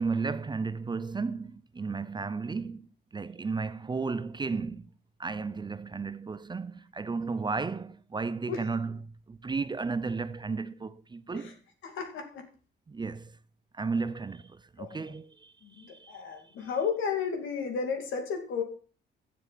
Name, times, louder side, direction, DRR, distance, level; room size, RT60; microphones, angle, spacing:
voice 1, 0.0-4.9 5.2-11.6 12.9-13.4 13.7-16.2, right 4 dB, 20° right, 0.5 m, -34 dB
voice 2, 11.8-12.4 14.8-15.0 15.6-18.6, left 6 dB, 80° left, 2.6 m, -33 dB
15.0 x 7.3 x 4.2 m
cardioid pair, 90°, 20 cm